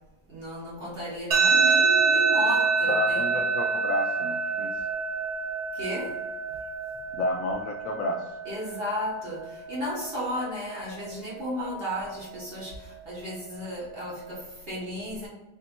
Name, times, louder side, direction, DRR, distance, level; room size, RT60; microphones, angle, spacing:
voice 1, 0.3-3.4 5.7-6.1 8.4-15.3, equal, 40° right, -6 dB, 1.1 m, -34 dB
sound 1, 1.3-14.3, right 4 dB, 65° right, 1.2 m, -28 dB
voice 2, 2.9-4.8 7.2-8.4, left 1 dB, 75° left, 2 dB, 0.7 m, -30 dB
3.4 x 2.6 x 4.2 m, 1.0 s
omnidirectional pair, 1.9 m